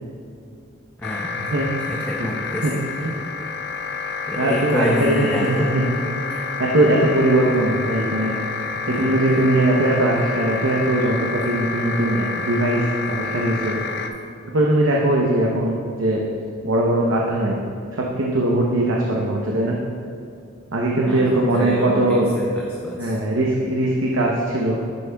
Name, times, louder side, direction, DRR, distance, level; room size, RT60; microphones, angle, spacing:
sound 1, 1.0-14.1, left 5 dB, 55° left, 0.5 m, -29 dB
voice 1, 1.0-1.5 1.9-2.8 4.3-5.7 8.9-9.5 21.1-23.1, equal, 10° left, -2 dB, 0.5 m, -28 dB
voice 2, 4.4-5.9 6.1-6.2 6.6-8.3 8.9-13.8 14.5-16.2 16.6-17.6 18.0-19.8 20.7-22.3 23.0-24.8, right 1 dB, 80° right, -2 dB, 0.8 m, -20 dB
11.0 x 8.2 x 2.3 m, 2.5 s
head